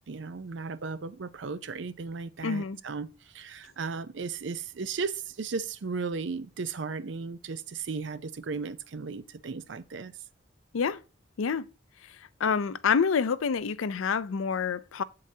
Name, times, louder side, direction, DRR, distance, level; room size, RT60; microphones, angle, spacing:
voice 1, 0.1-10.1, right 4 dB, 65° right, 0.5 m, -35 dB
voice 2, 2.4-2.8 10.7-11.0 11.4-11.7 12.0-15.0, left 6 dB, 85° left, 0.5 m, -28 dB
7.7 x 7.3 x 2.7 m
head